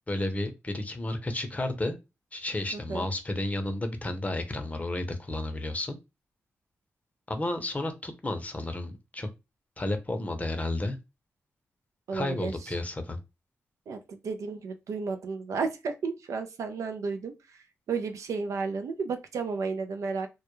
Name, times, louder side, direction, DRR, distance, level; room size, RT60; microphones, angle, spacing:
voice 1, 0.1-2.0 2.3-6.0 7.3-9.3 9.8-11.0 12.1-13.2, left 2 dB, 25° left, 0.6 m, -32 dB
voice 2, 2.7-3.1 12.1-12.7 13.9-20.3, right 4 dB, 80° right, 0.4 m, -33 dB
2.2 x 2.1 x 2.9 m
cardioid pair, 65°, 5 cm